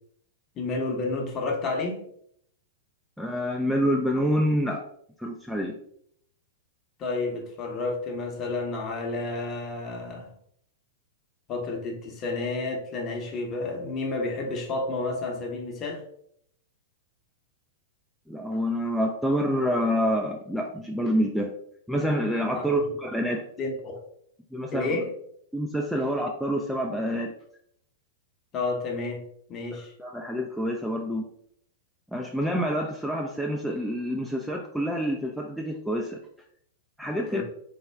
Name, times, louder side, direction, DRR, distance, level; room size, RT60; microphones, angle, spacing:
voice 1, 0.6-2.0 7.0-10.3 11.5-16.0 22.5-22.6 23.6-24.0 24.7-25.1 28.5-29.2 29.5-29.9 37.3-37.4, left 3 dB, 30° left, 0.8 m, -30 dB
voice 2, 3.2-4.9 5.2-5.8 18.3-21.5 21.9-23.5 24.5-25.0 25.5-27.3 30.0-31.3 32.1-36.2 37.0-37.4, equal, ahead, 0.3 m, -27 dB
3.4 x 2.1 x 3.3 m
figure-of-eight pair, 100°, 0 cm